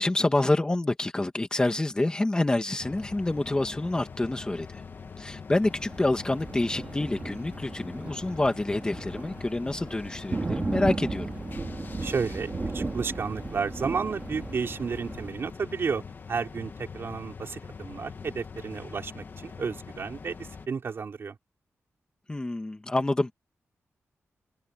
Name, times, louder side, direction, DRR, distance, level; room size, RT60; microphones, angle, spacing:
voice 1, 0.0-4.8 5.2-11.3 22.3-23.3, left 2 dB, 15° left, 2.0 m, -27 dB
sound 1, 2.8-20.7, left 5 dB, 45° left, 1.4 m, -43 dB
Thunder, 5.6-15.3, right 3 dB, 30° right, 2.6 m, -36 dB
voice 2, 12.0-16.0 16.3-21.4, right 5 dB, 50° right, 4.6 m, -32 dB
open air
wide cardioid pair, 155°, 5 cm